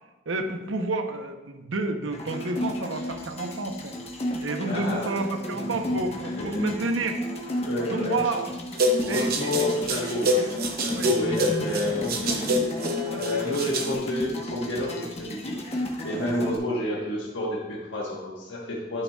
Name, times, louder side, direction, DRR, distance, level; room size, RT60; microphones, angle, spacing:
voice 1, 0.3-3.9 4.3-7.2 7.9-8.5 9.1-9.7 10.4-10.5 10.9-11.3 12.2-12.7 13.1-13.2, right 2 dB, 85° right, 5 dB, 0.8 m, -30 dB
sound 1, 2.1-16.6, left 1 dB, 35° left, 1.1 m, -33 dB
voice 2, 4.7-5.2 6.2-6.7 7.6-8.3 9.0-10.4 10.8-12.5 13.2-19.0, left 1 dB, 75° left, -4 dB, 1.3 m, -30 dB
sound 2, 8.7-13.9, equal, 50° right, 0.8 m, -26 dB
12.0 x 6.7 x 2.4 m, 1.1 s
head